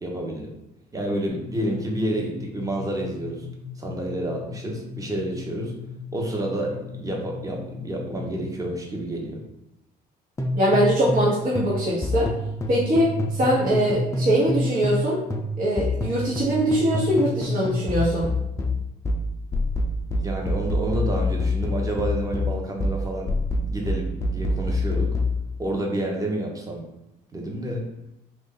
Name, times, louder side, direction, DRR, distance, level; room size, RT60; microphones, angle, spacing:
voice 1, 0.0-0.5 0.9-3.4 3.8-5.7 6.1-9.4 20.2-23.3 23.6-25.2 25.6-26.8 27.3-27.9, right 1 dB, 20° right, 0 dB, 0.9 m, -29 dB
sound 1, 1.3-8.8, left 7 dB, 80° left, 0.5 m, -39 dB
sound 2, 10.4-11.3 11.6-15.0 15.3-25.4, left 2 dB, 15° left, 0.4 m, -26 dB
voice 2, 10.5-12.3 12.7-15.2 15.6-18.3, equal, 55° right, -5 dB, 1.1 m, -22 dB
3.2 x 2.5 x 3.8 m, 0.88 s
cardioid pair, 110°, 17 cm